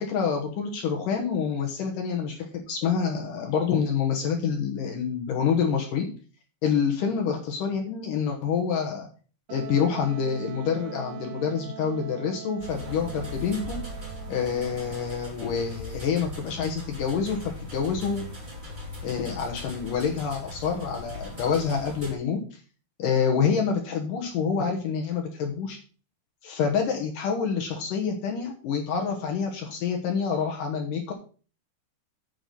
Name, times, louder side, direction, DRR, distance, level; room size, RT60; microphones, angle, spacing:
voice 1, 0.0-6.1 6.6-9.1 9.5-13.8 14.3-18.3 19.0-22.4 23.0-25.8 26.4-31.1, left 6 dB, 70° left, 1 dB, 2.6 m, -27 dB
Wind instrument woodwind instrument, 9.5-15.1, right 12 dB, 80° right, 2.5 m, -42 dB
sound 1, 12.6-22.1, left 2 dB, 15° right, 2.1 m, -39 dB
9.3 x 6.0 x 5.2 m, 0.39 s
omnidirectional pair, 4.3 m